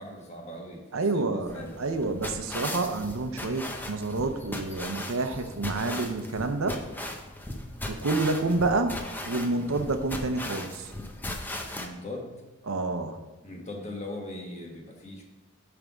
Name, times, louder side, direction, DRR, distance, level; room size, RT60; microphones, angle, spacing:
voice 1, 0.0-0.8 1.1-1.7 9.5-9.8 11.7-12.4 13.4-15.2, left 1 dB, 30° left, 0 dB, 1.3 m, -40 dB
voice 2, 0.9-6.8 7.9-9.0 9.2-10.9 12.7-13.3, right 3 dB, 75° right, 7 dB, 0.7 m, -28 dB
sound 1, 1.5-11.9, left 1 dB, 10° left, 0.6 m, -37 dB
9.0 x 3.5 x 6.1 m, 1.1 s
head